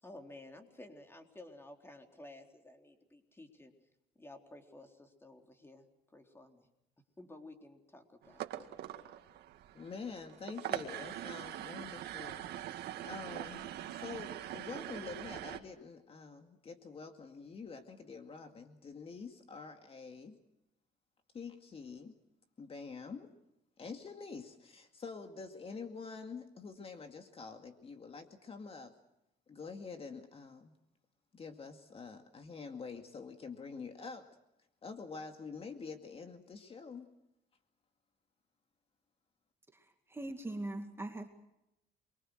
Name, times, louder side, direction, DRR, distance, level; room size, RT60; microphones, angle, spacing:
voice 1, 0.0-3.7 4.2-5.9 6.1-6.7 7.2-8.8, left 2 dB, 15° left, 4 dB, 3.9 m, -53 dB
sound 1, 8.2-15.6, right 12 dB, 75° right, 2.1 m, -43 dB
voice 2, 9.7-20.4 21.3-22.1 22.6-23.3 23.8-28.9 29.5-30.7 31.3-34.3 34.8-37.1, left 5 dB, 35° left, 6 dB, 2.2 m, -47 dB
voice 3, 39.7-41.3, right 2 dB, 15° right, 5 dB, 2.2 m, -41 dB
28.5 x 23.5 x 6.4 m, 0.88 s
cardioid pair, 110°, 17 cm